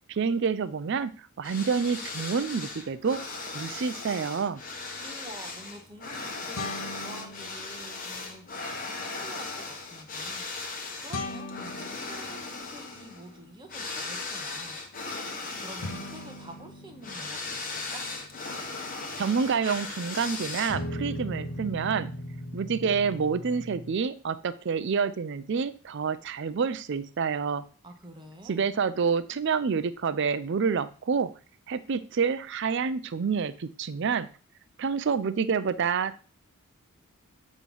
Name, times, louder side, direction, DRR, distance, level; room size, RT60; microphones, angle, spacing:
voice 1, 0.1-3.2 3.5-4.6 19.2-22.1 22.5-27.6 28.5-31.3 31.7-34.3 34.8-36.2, right 5 dB, 50° right, 13 dB, 0.4 m, -28 dB
sound 1, 1.4-21.0, left 3 dB, 40° left, 1.0 m, -38 dB
sound 2, 4.6-4.7 6.5-8.2 11.1-13.5 15.8-20.1 20.7-23.9, left 1 dB, 75° left, 1.0 m, -40 dB
voice 2, 5.0-10.5 11.0-14.8 15.4-18.1 27.8-28.7, right 1 dB, 20° right, 3 dB, 0.9 m, -48 dB
8.5 x 3.1 x 5.3 m, 0.39 s
head